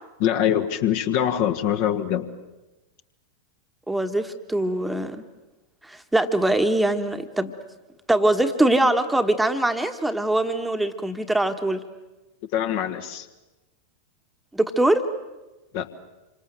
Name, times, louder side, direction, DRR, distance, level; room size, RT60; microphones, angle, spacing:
voice 1, 0.2-2.3 12.5-13.3 15.7-15.9, left 10 dB, 50° left, 7 dB, 1.6 m, -23 dB
voice 2, 3.9-5.2 5.9-7.5 8.1-11.8 14.5-15.0, right 1 dB, 5° right, 7 dB, 1.4 m, -22 dB
27.0 x 25.5 x 7.8 m, 1.1 s
figure-of-eight pair, 90°, 0 cm